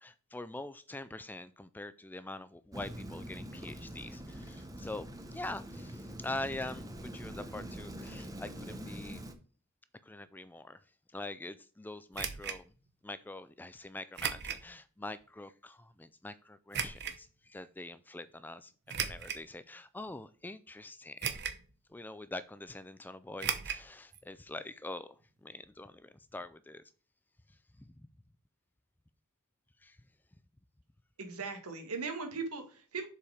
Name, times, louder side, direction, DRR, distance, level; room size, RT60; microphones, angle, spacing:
voice 1, 0.0-6.9 7.1-9.2 10.0-10.8 11.1-12.7 13.0-21.4 21.9-25.2 25.4-26.8 27.5-28.1 29.8-30.0, left 2 dB, 10° left, 0.3 m, -44 dB
Rain, 2.7-9.3, equal, 15° right, 0.9 m, -44 dB
sound 1, 12.1-12.6 14.2-14.7 15.2-15.3 16.7-17.2 18.9-19.5 20.1-20.2 21.2-21.7 21.9-22.0 23.4-23.8 24.1-24.2 24.5-24.6, right 8 dB, 50° right, 0.9 m, -36 dB
voice 2, 31.2-33.1, right 4 dB, 80° right, 1.9 m, -38 dB
7.1 x 4.9 x 4.9 m
head